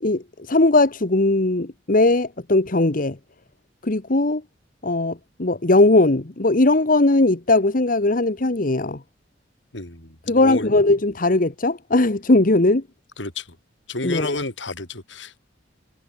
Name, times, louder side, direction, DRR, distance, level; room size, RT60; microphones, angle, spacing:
voice 1, 0.0-3.2 3.8-4.4 4.8-9.0 10.3-12.8 14.0-14.4, left 2 dB, 50° left, 1.3 m, -19 dB
voice 2, 9.7-10.7 13.2-13.6 13.9-15.4, left 2 dB, 85° left, 5.7 m, -31 dB
head